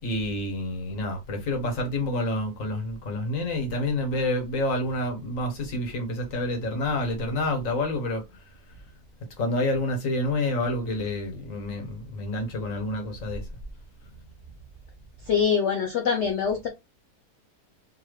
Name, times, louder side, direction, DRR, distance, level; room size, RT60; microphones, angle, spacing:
voice 1, 0.0-8.2 9.4-13.4, left 1 dB, 55° left, 1.4 m, -28 dB
voice 2, 15.3-16.7, left 7 dB, 75° left, 0.6 m, -24 dB
3.9 x 2.7 x 3.1 m
omnidirectional pair, 1.8 m